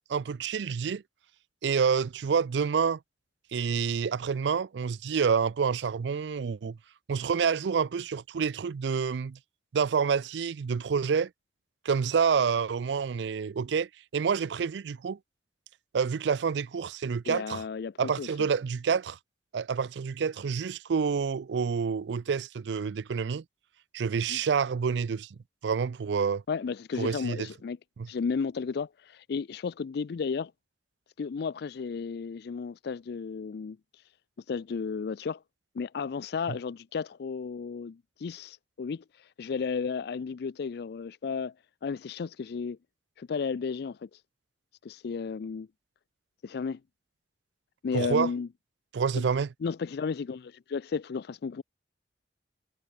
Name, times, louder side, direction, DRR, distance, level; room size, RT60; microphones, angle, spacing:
voice 1, 0.1-1.0 1.6-3.0 3.5-6.8 7.1-9.4 9.7-11.3 11.8-15.2 15.9-17.6 18.0-19.2 19.5-23.4 23.9-25.3 25.6-26.4 27.0-27.5 28.0-28.1 47.9-48.3 48.9-49.5, right 6 dB, 70° right, 0.4 m, -28 dB
voice 2, 17.3-18.3 24.3-24.4 26.5-27.8 28.1-30.5 31.2-34.0 34.5-35.4 35.7-41.5 41.8-42.8 43.2-44.2 44.8-45.7 46.4-46.8 47.8-48.5 49.2-49.3 49.6-51.6, left 5 dB, 60° left, 0.4 m, -33 dB
head